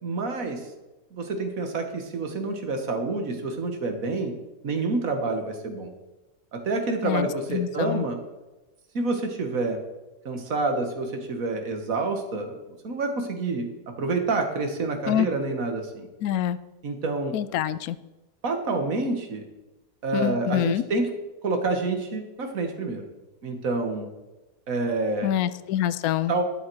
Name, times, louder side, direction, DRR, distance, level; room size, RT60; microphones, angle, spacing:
voice 1, 0.0-0.7 1.1-4.4 4.6-5.9 6.5-8.2 8.9-9.8 10.3-12.6 12.8-16.1 16.8-17.3 18.4-19.4 20.0-21.1 21.4-23.1 23.4-24.1 24.7-25.3 26.3-26.4, right 3 dB, 55° right, 5 dB, 1.9 m, -28 dB
voice 2, 7.0-8.0 15.1-15.3 16.2-16.6 17.3-18.0 20.1-20.8 25.2-26.3, left 11 dB, 70° left, 15 dB, 1.0 m, -26 dB
12.0 x 9.6 x 4.7 m, 1.1 s
omnidirectional pair, 1.7 m